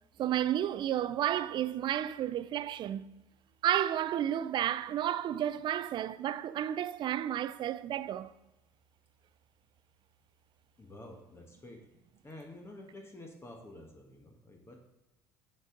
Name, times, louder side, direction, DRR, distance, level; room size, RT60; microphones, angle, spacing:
voice 1, 0.2-3.1 3.6-8.3, right 11 dB, 45° right, 0.4 m, -32 dB
voice 2, 10.8-11.9 12.2-14.8, left 1 dB, 25° left, 1.3 m, -50 dB
7.9 x 5.3 x 3.9 m
hypercardioid pair, 75°, 11 cm